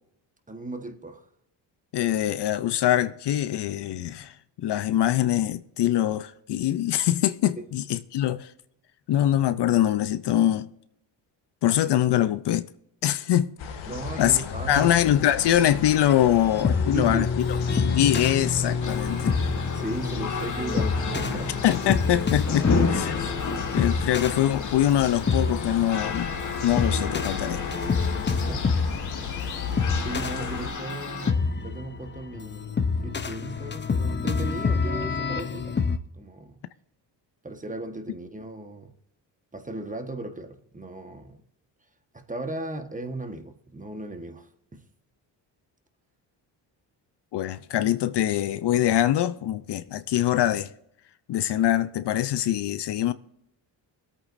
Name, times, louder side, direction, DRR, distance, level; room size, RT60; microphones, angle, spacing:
voice 1, 0.5-1.3 7.6-7.7 13.9-15.0 16.9-17.3 19.7-21.6 28.3-29.0 30.0-35.8 36.1-36.6 37.4-38.9 39.5-41.4 42.1-44.8, right 2 dB, 15° right, 1.4 m, -36 dB
voice 2, 1.9-8.5 9.1-10.7 11.6-12.7 13.0-13.5 14.2-14.4 14.7-17.3 17.7-19.3 21.6-23.4 23.7-26.3 26.6-27.6 47.3-50.7 51.3-53.1, left 12 dB, 60° left, 0.6 m, -23 dB
sound 1, 13.6-30.7, left 6 dB, 80° left, 1.5 m, -35 dB
sound 2, 16.1-36.0, left 5 dB, 25° left, 0.7 m, -28 dB
sound 3, 18.8-31.3, left 4 dB, 40° left, 1.5 m, -33 dB
22.5 x 8.5 x 2.6 m
supercardioid pair, 65°, 47 cm